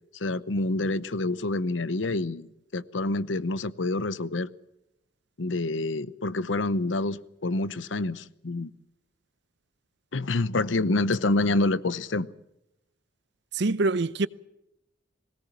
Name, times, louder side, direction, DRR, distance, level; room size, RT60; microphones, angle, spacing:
voice 1, 0.1-4.5 5.4-8.7 10.1-12.3, left 2 dB, 80° left, 0.8 m, -27 dB
voice 2, 13.5-14.3, right 3 dB, 65° right, 0.7 m, -24 dB
20.5 x 19.0 x 7.3 m
head